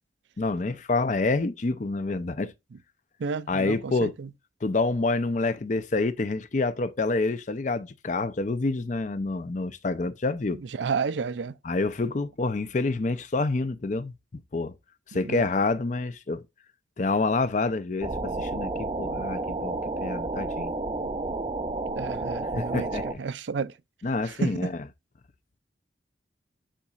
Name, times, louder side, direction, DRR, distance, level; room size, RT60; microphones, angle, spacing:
voice 1, 0.4-2.5 3.5-4.1 4.6-10.6 11.6-14.1 14.5-14.7 15.1-16.4 17.0-20.7 22.5-23.2 24.0-24.8, left 3 dB, 40° left, 0.5 m, -27 dB
voice 2, 3.2-4.3 10.8-11.5 15.2-15.4 22.0-22.9 23.2-23.7 24.4-24.7, right 5 dB, 80° right, 0.5 m, -31 dB
sound 1, 18.0-23.1, right 2 dB, 30° right, 0.6 m, -31 dB
10.0 x 4.0 x 2.4 m
head